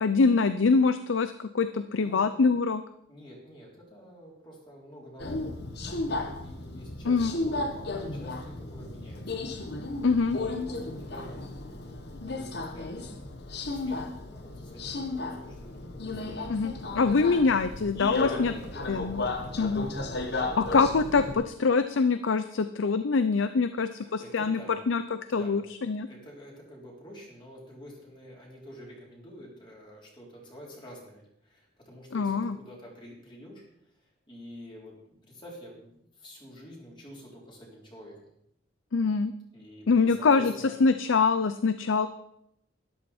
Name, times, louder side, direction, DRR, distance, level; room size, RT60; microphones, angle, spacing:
voice 1, 0.0-2.8 7.1-7.3 10.0-10.4 16.5-18.5 18.9-19.2 19.6-19.9 20.6-24.6 24.9-25.0 25.3-26.1 32.1-32.6 38.9-39.3 39.9-40.5 40.8-42.1, left 4 dB, 80° left, 11 dB, 0.6 m, -24 dB
voice 2, 3.1-9.5 10.3-17.1 18.2-19.6 23.9-24.7 25.3-25.6 26.1-38.3 39.5-40.9, equal, 25° left, -3 dB, 3.7 m, -48 dB
Subway metro underground, 5.2-21.4, left 2 dB, 60° left, 1.2 m, -34 dB
12.5 x 12.0 x 4.4 m, 0.77 s
head